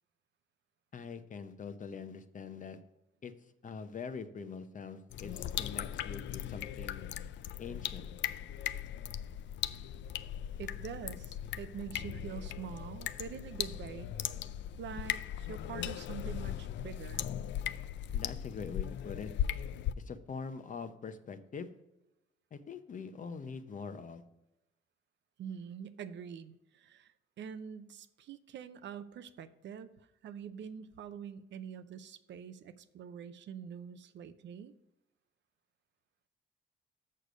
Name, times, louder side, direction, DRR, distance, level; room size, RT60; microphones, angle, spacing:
voice 1, 0.9-2.8 3.2-3.3 3.6-7.1 7.6-8.1 18.1-19.3 20.0-21.7 22.5-24.2, left 5 dB, 40° left, 10 dB, 0.7 m, -43 dB
sound 1, 5.1-19.9, left 10 dB, 70° left, 0.4 m, -38 dB
voice 2, 10.6-14.1 14.8-17.3 25.4-34.7, right 7 dB, 65° right, 12 dB, 0.6 m, -45 dB
6.7 x 6.5 x 5.0 m, 0.94 s
cardioid pair, 90°, 20 cm